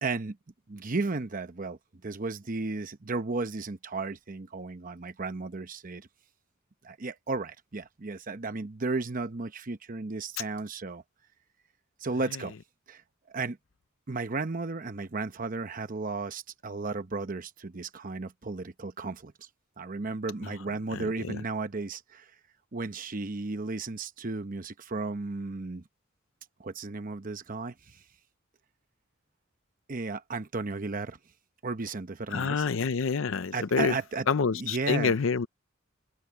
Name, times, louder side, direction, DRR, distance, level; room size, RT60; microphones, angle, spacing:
voice 1, 0.0-0.4 0.7-6.1 6.8-11.0 12.0-12.5 12.9-13.0 13.3-13.6 14.1-19.3 19.8-22.3 22.7-25.8 26.6-28.0 29.9-31.2 31.6-32.7 33.5-34.3 34.5-35.1, right 3 dB, 40° right, 0.8 m, -34 dB
voice 2, 20.9-21.4 32.3-33.9 34.3-35.5, left 5 dB, 70° left, 0.5 m, -27 dB
head